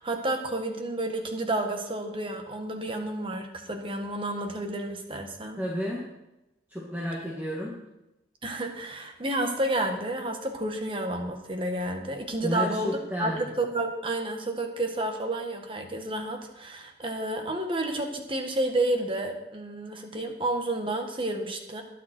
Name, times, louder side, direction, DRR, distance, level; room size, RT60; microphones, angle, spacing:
voice 1, 0.0-5.6 8.4-21.8, right 1 dB, 30° right, 4 dB, 1.6 m, -30 dB
voice 2, 5.6-6.1 6.7-7.7 12.4-13.5, equal, 10° right, -4 dB, 1.8 m, -31 dB
21.0 x 7.6 x 4.5 m, 0.94 s
head